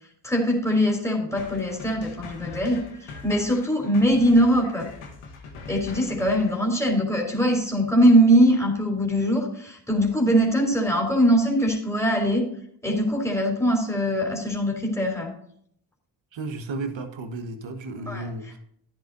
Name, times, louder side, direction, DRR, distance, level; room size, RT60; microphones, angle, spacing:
voice 1, 0.2-4.9 5.7-12.5 12.8-15.3 18.0-18.6, equal, 5° left, 3.5 m, -22 dB
sound 1, 1.4-6.6, left 4 dB, 90° left, 1.5 m, -42 dB
voice 2, 16.3-18.6, right 2 dB, 70° right, 1.5 m, -33 dB
12.5 x 10.5 x 2.7 m
supercardioid pair, 50°, 47 cm